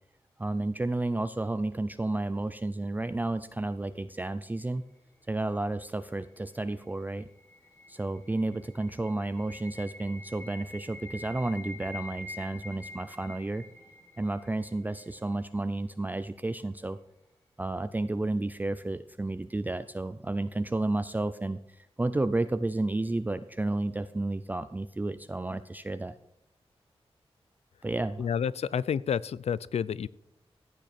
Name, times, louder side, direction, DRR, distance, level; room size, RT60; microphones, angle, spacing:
voice 1, 0.4-4.9 5.3-7.3 7.9-13.6 14.2-17.0 17.6-26.2 27.8-28.3, right 2 dB, 15° right, 12 dB, 0.4 m, -31 dB
sound 1, 6.3-15.3, left 1 dB, 25° left, 4.1 m, -47 dB
voice 2, 28.2-30.1, left 7 dB, 90° left, 20 dB, 0.4 m, -29 dB
15.0 x 9.2 x 4.3 m, 0.82 s
wide cardioid pair, 140°, 11 cm